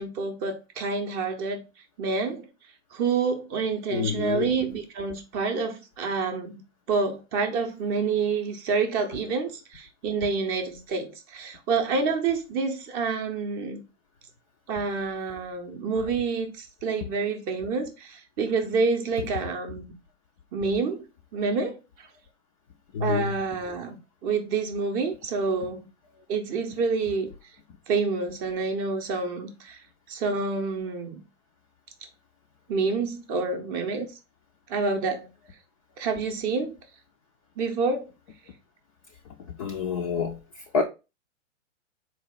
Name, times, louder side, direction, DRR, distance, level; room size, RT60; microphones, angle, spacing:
voice 1, 0.0-1.6 2.0-2.5 2.9-6.6 6.9-13.8 14.7-19.9 20.5-21.1 21.3-21.8 23.0-25.9 26.3-27.3 27.9-29.8 30.1-31.2 32.7-34.1 34.7-35.3 36.0-36.8 37.6-38.1, right 4 dB, 25° right, 0.6 m, -28 dB
voice 2, 3.9-4.5 22.9-23.3 39.6-40.4 40.7-40.8, left 6 dB, 30° left, 0.3 m, -27 dB
4.1 x 2.3 x 3.9 m
hypercardioid pair, 125°, 38 cm